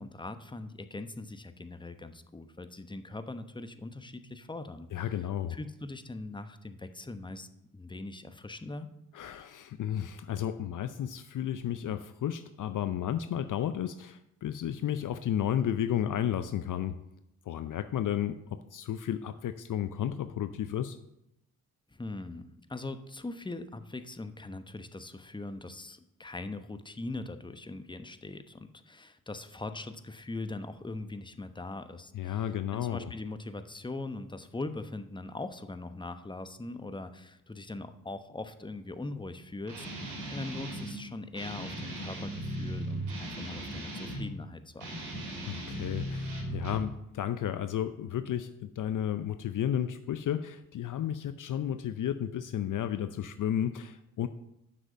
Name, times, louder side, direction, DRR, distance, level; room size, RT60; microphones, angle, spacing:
voice 1, 0.0-4.9 5.5-7.5 7.7-8.9 21.9-45.2, left 2 dB, 10° left, 10 dB, 1.0 m, -41 dB
voice 2, 4.9-5.6 9.1-17.0 17.5-21.0 32.1-33.1 45.5-54.3, left 10 dB, 50° left, 11 dB, 0.6 m, -33 dB
Guitar, 39.7-41.0 41.3-44.3 44.7-46.9, right 1 dB, 75° right, 3.1 m, -37 dB
7.3 x 6.2 x 7.8 m, 0.84 s
hypercardioid pair, 40°, 40 cm